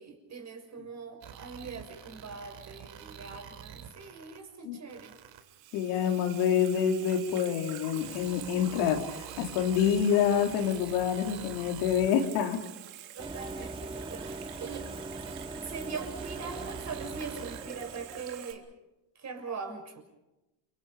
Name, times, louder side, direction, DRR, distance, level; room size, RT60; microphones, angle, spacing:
voice 1, 0.0-5.1 13.1-15.4 15.6-18.6 19.1-20.0, right 5 dB, 30° right, 4 dB, 6.4 m, -42 dB
sound 1, 1.2-4.4 4.9-5.4 6.1-6.2 7.1-7.2 8.0-12.3 13.2-13.3 14.2-14.3 15.3-15.4 16.2-17.6, right 9 dB, 60° right, 4.1 m, -48 dB
Water tap faucet / Sink (filling or washing), 4.9-18.5, right 12 dB, 85° right, 3.5 m, -46 dB
voice 2, 5.7-12.6, left 8 dB, 90° left, 3 dB, 4.0 m, -27 dB
sound 2, 13.2-18.4, right 2 dB, 10° right, 1.9 m, -41 dB
29.5 x 26.0 x 5.2 m, 0.97 s
cardioid pair, 115°, 49 cm